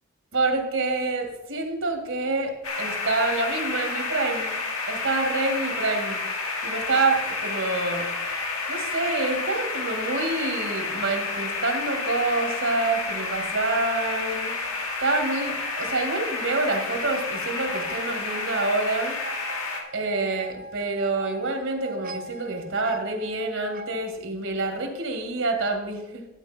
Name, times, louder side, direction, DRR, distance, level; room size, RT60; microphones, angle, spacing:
voice 1, 0.3-4.6 4.9-6.2 6.6-8.1 8.7-14.6 15.0-19.2 19.9-26.3, right 3 dB, 60° right, 3 dB, 2.0 m, -27 dB
sound 1, 2.6-19.8, left 3 dB, 70° left, 2.4 m, -30 dB
sound 2, 17.6-24.1, right 1 dB, 40° right, 0.5 m, -41 dB
12.0 x 8.7 x 4.4 m, 0.96 s
head